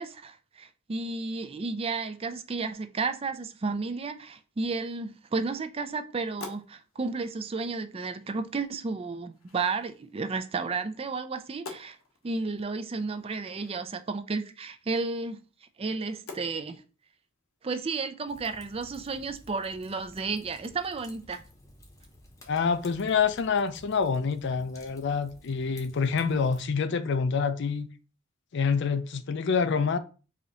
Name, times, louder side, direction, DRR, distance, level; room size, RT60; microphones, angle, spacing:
voice 1, 0.0-12.0 12.2-15.4 15.8-16.8 17.6-21.4, right 4 dB, 30° right, 0.4 m, -32 dB
sound 1, 4.0-19.0, left 3 dB, 80° left, 1.0 m, -52 dB
Fire, 18.3-26.6, left 1 dB, 15° left, 0.8 m, -54 dB
voice 2, 22.5-27.9 28.5-30.0, left 5 dB, 60° left, 0.4 m, -27 dB
4.8 x 2.8 x 3.9 m
head